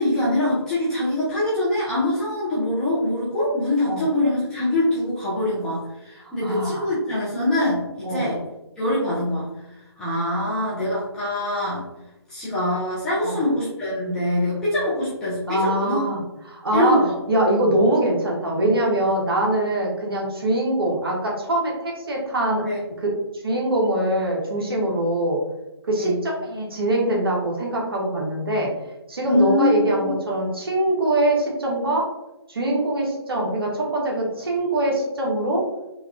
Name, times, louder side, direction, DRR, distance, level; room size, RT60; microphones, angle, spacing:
voice 1, 0.0-8.4 8.8-11.9 12.3-16.0 16.7-17.2 22.6-22.8 26.0-26.2 29.2-30.1, left 1 dB, 5° left, -11 dB, 0.4 m, -24 dB
voice 2, 6.4-6.9 8.0-8.3 13.2-13.4 15.5-16.2 16.5-17.0 17.3-22.6 23.0-23.1 23.4-25.4 25.9-28.7 29.1-32.1 32.5-35.6, right 1 dB, 60° right, -2 dB, 1.0 m, -23 dB
3.4 x 2.3 x 2.3 m, 0.95 s
figure-of-eight pair, 145°, 14 cm